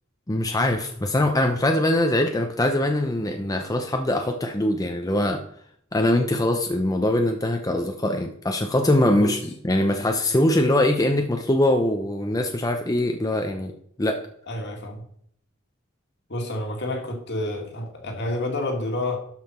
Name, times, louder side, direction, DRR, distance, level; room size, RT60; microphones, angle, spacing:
voice 1, 0.3-5.4 5.9-13.7 14.0-14.2, left 1 dB, 15° left, 0.7 m, -22 dB
voice 2, 14.5-15.0 16.3-19.2, left 1 dB, 55° left, 2.0 m, -29 dB
12.0 x 5.7 x 4.3 m
head